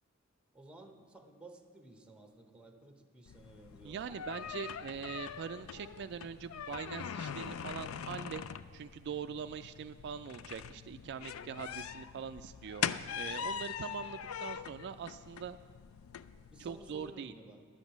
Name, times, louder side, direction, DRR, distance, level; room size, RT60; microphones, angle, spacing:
voice 1, 0.5-4.6 11.5-11.9 13.8-14.1 16.5-17.6, right 2 dB, 5° right, 5 dB, 0.8 m, -55 dB
sound 1, 3.3-17.1, left 8 dB, 70° left, 0.4 m, -42 dB
voice 2, 3.8-8.4 8.7-15.6 16.6-17.3, right 7 dB, 55° right, 10 dB, 0.3 m, -43 dB
11.0 x 7.3 x 7.9 m, 2.2 s
head